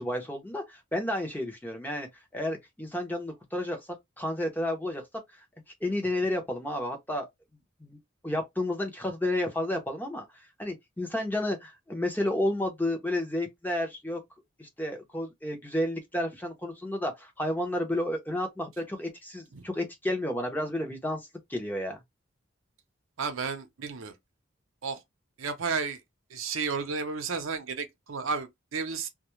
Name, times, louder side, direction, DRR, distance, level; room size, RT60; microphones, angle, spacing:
voice 1, 0.0-2.1 2.3-3.8 4.2-5.0 5.3-5.4 5.8-7.3 7.8-8.0 8.2-10.2 10.6-14.2 14.6-22.0, left 1 dB, 10° left, 0.6 m, -31 dB
voice 2, 23.2-24.1 24.8-25.0 25.4-26.0 26.3-29.1, right 5 dB, 75° right, 0.6 m, -32 dB
2.2 x 2.0 x 2.9 m
head